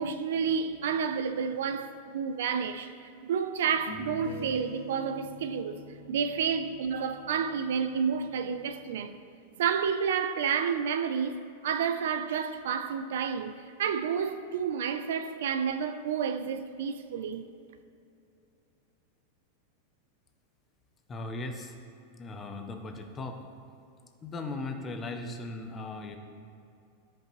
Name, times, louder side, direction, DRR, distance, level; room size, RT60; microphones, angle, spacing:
voice 1, 0.0-2.9 3.2-5.8 6.1-9.2 9.6-17.5, right 7 dB, 75° right, 0.5 m, -30 dB
sound 1, 2.6-2.7 3.7-8.9, left 1 dB, 80° left, 1.5 m, -45 dB
voice 2, 21.1-21.8 22.2-23.4 24.2-26.2, left 2 dB, 15° left, 0.5 m, -38 dB
14.0 x 5.3 x 3.0 m
supercardioid pair, 175°, 0 cm